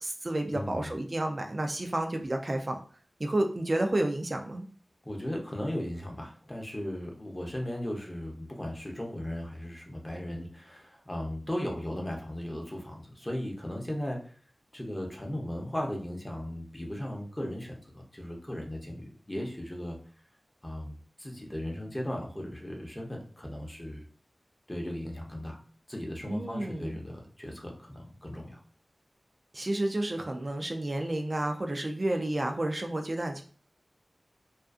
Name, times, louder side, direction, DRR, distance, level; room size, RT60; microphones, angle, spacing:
voice 1, 0.0-2.8 3.2-4.7 26.3-27.0 29.5-33.4, right 1 dB, 45° right, 3 dB, 0.3 m, -30 dB
voice 2, 0.5-0.9 5.0-14.3 14.7-20.0 20.6-24.0 24.7-25.6 25.9-28.6, left 1 dB, 20° left, 1 dB, 0.6 m, -37 dB
2.4 x 2.4 x 2.3 m, 0.43 s
wide cardioid pair, 65°, 0 cm